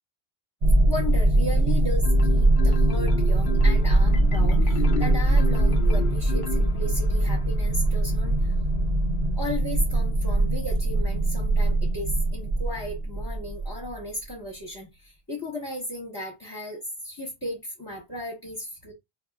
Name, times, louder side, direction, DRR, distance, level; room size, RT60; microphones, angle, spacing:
sound 1, 0.6-13.9, right 2 dB, 75° right, 1.2 m, -22 dB
voice 1, 0.9-8.5 9.4-18.9, left 1 dB, 25° left, 1.3 m, -35 dB
Marimba xylophone, 2.0-7.2, left 6 dB, 60° left, 0.7 m, -34 dB
5.1 x 2.7 x 2.3 m
omnidirectional pair, 1.1 m